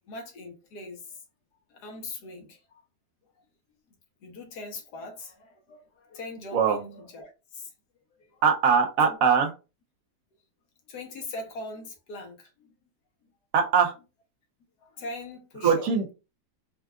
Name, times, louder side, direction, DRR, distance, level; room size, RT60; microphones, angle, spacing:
voice 1, 0.1-1.2 1.7-2.6 4.2-7.7 8.1-8.4 9.0-9.2 10.9-12.7 14.8-15.9, left 2 dB, 80° left, 1.5 m, -41 dB
voice 2, 8.4-9.5 13.5-13.9 15.6-16.1, right 6 dB, 65° right, 1.1 m, -21 dB
4.4 x 2.4 x 2.2 m
omnidirectional pair, 1.7 m